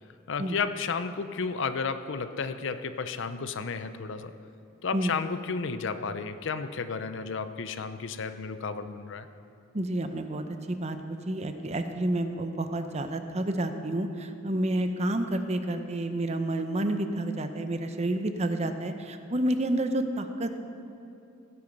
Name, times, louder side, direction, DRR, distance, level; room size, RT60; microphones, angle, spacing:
voice 1, 0.3-4.3 4.8-9.3, left 5 dB, 70° left, 11 dB, 0.6 m, -32 dB
voice 2, 9.7-20.6, right 1 dB, 35° right, 7 dB, 0.8 m, -29 dB
16.5 x 8.5 x 5.3 m, 2.7 s
head